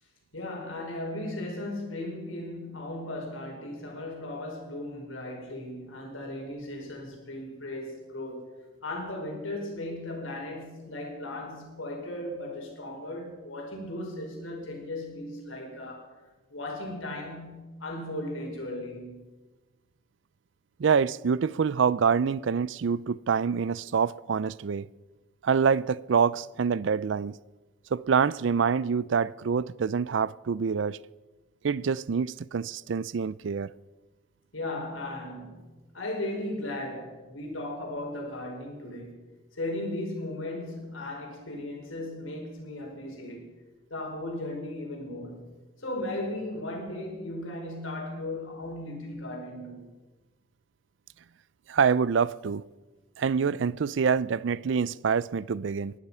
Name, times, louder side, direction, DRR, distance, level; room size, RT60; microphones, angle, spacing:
voice 1, 0.3-8.5 8.8-16.1 16.5-19.3 34.5-35.7 35.9-39.2 39.5-43.5 43.9-45.5 45.8-49.9, left 1 dB, 85° left, 5.1 m, -36 dB
voice 2, 20.8-24.9 25.4-27.3 27.9-31.0 31.6-33.7 51.7-52.6 53.2-55.9, right 6 dB, 65° right, 0.4 m, -26 dB
19.0 x 12.0 x 5.7 m
head